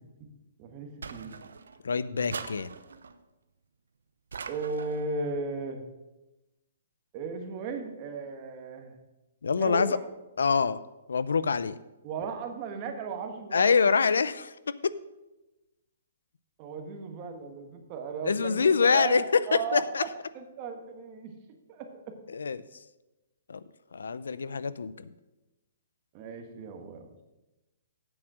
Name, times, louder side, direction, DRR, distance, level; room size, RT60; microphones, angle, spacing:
voice 1, 0.6-1.4 4.5-5.8 7.1-9.0 9.6-10.0 12.0-13.9 16.6-20.1 20.3-21.4 21.7-22.2 26.1-27.1, right 4 dB, 30° right, 5 dB, 1.4 m, -36 dB
sound 1, 1.0-1.8 2.3-3.2 4.3-5.1, right 5 dB, 90° right, 0.7 m, -41 dB
voice 2, 1.8-2.7 9.4-10.0 10.4-10.8 11.1-11.7 13.5-14.5 14.8-14.9 18.2-19.2 19.5-20.0 22.3-22.6 23.5-23.6 23.9-25.1, left 5 dB, 90° left, 16 dB, 0.5 m, -25 dB
8.0 x 7.2 x 6.1 m, 1.0 s
hypercardioid pair, 155°, 0 cm